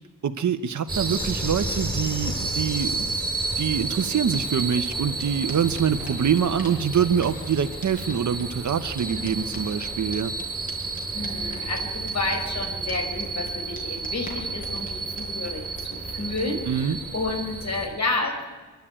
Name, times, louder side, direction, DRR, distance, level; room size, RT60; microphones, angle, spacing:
voice 1, 0.2-3.1 3.6-10.3 16.7-17.0, right 8 dB, 60° right, 8 dB, 0.9 m, -25 dB
sound 1, 0.9-17.9, right 3 dB, ahead, 5.3 m, -31 dB
sound 2, 3.9-16.5, left 1 dB, 25° left, 5.4 m, -44 dB
voice 2, 11.1-18.5, left 3 dB, 55° left, 2 dB, 5.1 m, -30 dB
26.0 x 12.0 x 8.8 m, 1.3 s
wide cardioid pair, 100°, 32 cm